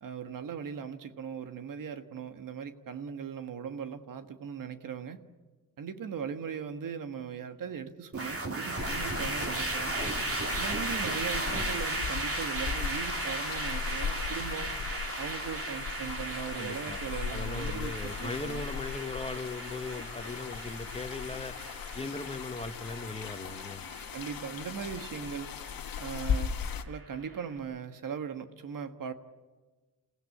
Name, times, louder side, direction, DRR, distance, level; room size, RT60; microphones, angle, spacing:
voice 1, 0.0-5.2 5.8-10.0 10.6-14.8 15.2-18.6 24.1-25.5 26.0-26.5 26.8-29.1, right 7 dB, 70° right, 8 dB, 1.6 m, -39 dB
sound 1, 8.1-27.4, right 2 dB, 40° right, 4.0 m, -37 dB
sound 2, 8.8-26.8, left 7 dB, 80° left, 1.5 m, -38 dB
voice 2, 16.5-17.0 17.3-21.5 21.9-23.8, left 3 dB, 15° left, 7 dB, 1.5 m, -38 dB
28.0 x 16.5 x 8.7 m, 1.3 s
cardioid pair, 115°, 34 cm